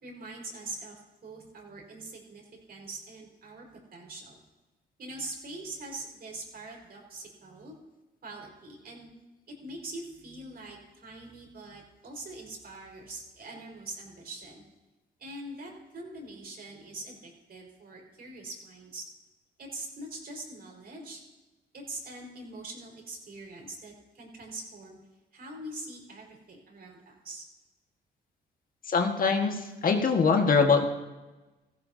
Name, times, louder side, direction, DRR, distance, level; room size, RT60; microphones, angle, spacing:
voice 1, 0.0-2.4 2.7-4.4 5.0-7.8 8.2-9.1 9.5-14.6 15.2-19.0 19.6-21.2 21.7-25.0 25.3-27.4, right 2 dB, 50° right, -1 dB, 4.7 m, -43 dB
voice 2, 28.9-30.9, left 5 dB, 45° left, 3 dB, 1.6 m, -23 dB
17.0 x 15.0 x 2.8 m, 1.1 s
cardioid pair, 90°, 20 cm